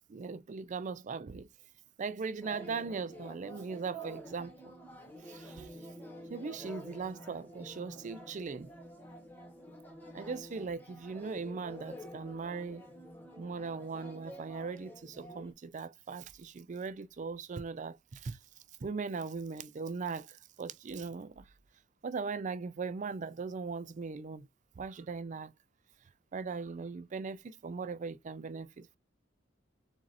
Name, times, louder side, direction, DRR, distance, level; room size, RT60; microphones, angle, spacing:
voice 1, 0.1-1.5 2.0-4.7 5.3-5.7 6.3-8.7 10.1-12.8 13.4-18.4 18.8-21.4 22.0-24.5 24.8-25.5 26.3-29.0, right 4 dB, 40° right, 0.4 m, -39 dB
sound 1, 2.4-15.5, right 1 dB, 10° left, 1.3 m, -49 dB
7.1 x 2.5 x 2.6 m
head